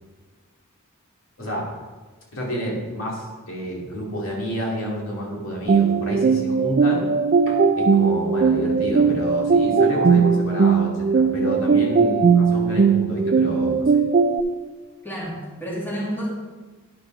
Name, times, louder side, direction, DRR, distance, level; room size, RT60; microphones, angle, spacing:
voice 1, 1.4-1.7 2.3-7.1 7.5-13.9, equal, 65° left, -3 dB, 2.3 m, -29 dB
sound 1, 5.7-14.4, right 5 dB, 45° right, 0.4 m, -19 dB
voice 2, 15.0-16.3, equal, 10° left, -5 dB, 2.2 m, -30 dB
10.0 x 5.3 x 5.6 m, 1.3 s
head